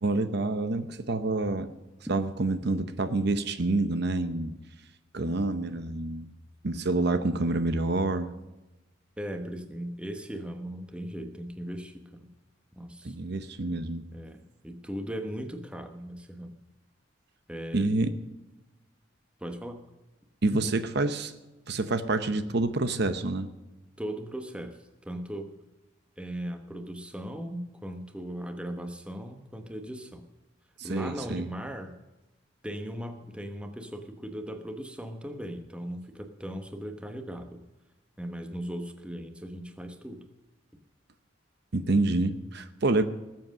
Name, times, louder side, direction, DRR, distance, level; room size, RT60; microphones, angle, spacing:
voice 1, 0.0-1.7 2.1-4.5 5.1-6.3 6.6-8.3 13.0-14.1 17.7-18.1 20.4-21.3 21.7-23.5 30.8-31.5 41.7-43.0, right 2 dB, 55° right, 10 dB, 0.8 m, -27 dB
voice 2, 9.2-12.3 12.7-13.1 14.1-16.5 17.5-17.9 19.4-19.8 24.0-25.5 26.2-30.3 30.8-32.0 32.6-37.6 38.2-40.3, equal, 5° right, 6 dB, 1.1 m, -38 dB
19.5 x 7.7 x 6.4 m, 1.1 s
head